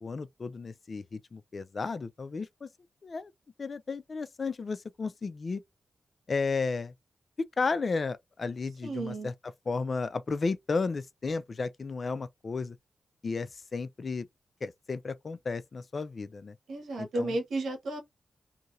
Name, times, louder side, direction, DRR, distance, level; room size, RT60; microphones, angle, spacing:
voice 1, 0.0-2.7 3.0-3.3 3.6-5.6 6.3-6.9 7.4-9.3 9.7-12.8 13.2-14.3 14.6-16.5 17.0-17.4, left 4 dB, 55° left, 0.4 m, -33 dB
voice 2, 8.8-9.3 16.7-18.0, right 2 dB, 85° right, 1.1 m, -33 dB
2.8 x 2.7 x 2.5 m
cardioid pair, 50°, 0 cm